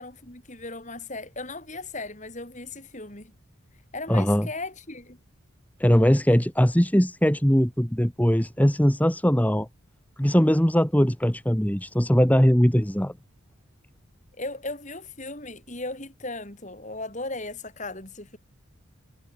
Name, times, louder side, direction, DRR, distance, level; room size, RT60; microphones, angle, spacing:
voice 1, 0.0-3.3 3.9-5.2 14.4-18.4, left 2 dB, 35° left, 5.0 m, -37 dB
voice 2, 4.1-4.5 5.8-9.7 10.2-13.1, equal, 5° left, 1.4 m, -20 dB
head